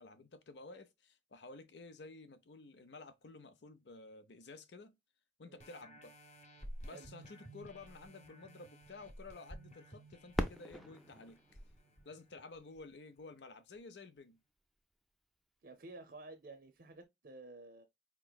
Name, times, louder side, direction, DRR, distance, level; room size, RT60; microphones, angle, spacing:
voice 1, 0.0-5.0 5.4-6.1 6.8-11.4 12.0-14.4, left 3 dB, 85° left, 0.6 m, -53 dB
sound 1, 5.6-12.8 13.3-13.4, right 1 dB, 40° left, 0.9 m, -54 dB
Fireworks, 10.3-13.1 13.8-13.9 14.6-15.0 16.9-17.0, equal, ahead, 0.4 m, -42 dB
voice 2, 15.6-17.8, right 2 dB, 60° right, 0.6 m, -52 dB
4.5 x 3.0 x 2.2 m
head